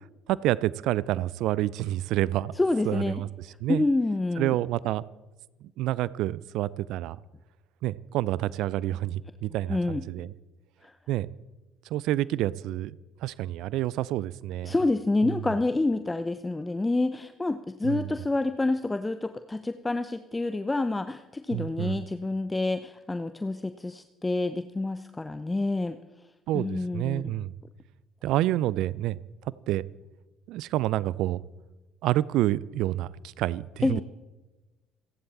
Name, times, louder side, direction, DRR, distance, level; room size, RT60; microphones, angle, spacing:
voice 1, 0.3-2.5 2.8-3.9 4.4-5.0 5.8-7.2 7.8-10.3 11.1-11.3 11.8-13.0 13.2-14.7 15.2-15.4 17.8-18.1 21.5-22.0 26.5-27.5 28.2-29.2 29.4-29.8 30.5-31.4 32.0-34.0, right 14 dB, 65° right, 21 dB, 0.5 m, -28 dB
voice 2, 2.6-3.1 3.7-4.5 9.7-10.0 10.8-10.9 14.6-26.0 26.5-27.2 33.8-34.0, left 2 dB, 15° left, 10 dB, 0.9 m, -28 dB
28.5 x 11.0 x 4.3 m, 1.1 s
figure-of-eight pair, 55°, 0 cm